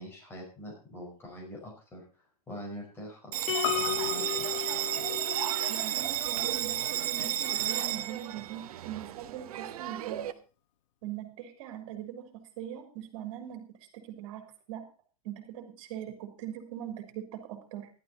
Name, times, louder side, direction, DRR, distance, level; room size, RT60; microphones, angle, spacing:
voice 1, 0.0-4.5, equal, 10° left, -1 dB, 5.3 m, -44 dB
Bell, 3.3-10.3, right 13 dB, 70° right, 1.2 m, -32 dB
sound 1, 3.5-5.9, left 12 dB, 30° left, 1.8 m, -35 dB
Piano, 3.6-8.1 8.4-8.5, left 15 dB, 55° left, 0.9 m, -39 dB
voice 2, 5.7-10.3 11.0-14.9 15.2-17.9, right 10 dB, 50° right, 5 dB, 3.7 m, -41 dB
14.0 x 12.0 x 4.2 m, 0.36 s
supercardioid pair, 155°, 19 cm